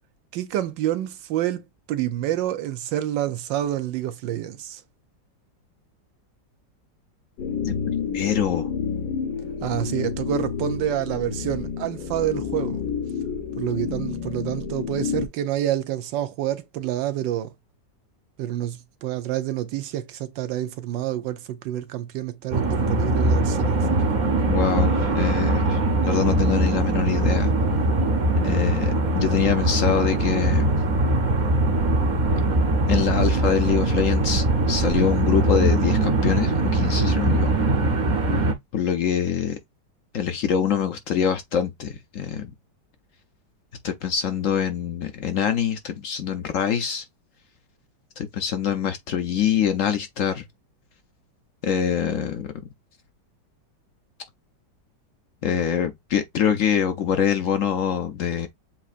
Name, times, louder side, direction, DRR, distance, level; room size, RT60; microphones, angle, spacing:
voice 1, 0.3-1.6 1.9-4.8 9.6-12.8 13.6-17.5 18.4-24.0, right 12 dB, 85° right, 1.4 m, -28 dB
sound 1, 7.4-15.3, left 6 dB, 80° left, 1.6 m, -29 dB
voice 2, 8.1-8.7 24.5-27.5 28.4-30.7 32.9-37.7 38.7-39.6 40.1-42.5 43.8-47.1 48.2-50.5 51.6-52.5 55.4-58.5, left 8 dB, 65° left, 0.8 m, -24 dB
sound 2, 22.5-38.5, right 2 dB, 40° right, 0.7 m, -21 dB
7.4 x 2.7 x 2.4 m
omnidirectional pair, 1.9 m